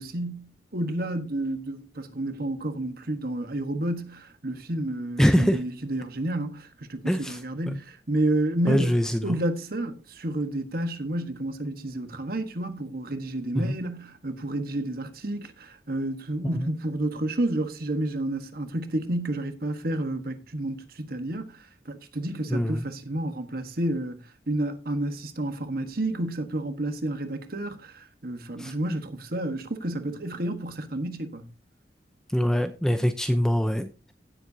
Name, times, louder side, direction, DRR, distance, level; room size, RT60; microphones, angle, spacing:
voice 1, 0.0-31.5, right 1 dB, 55° right, 1.3 m, -30 dB
voice 2, 5.2-5.6 7.1-7.4 7.7-7.8 8.7-9.4 13.6-13.8 16.5-16.7 22.5-22.8 28.6-28.7 32.3-34.1, equal, 5° left, 0.6 m, -24 dB
16.5 x 7.7 x 2.8 m
head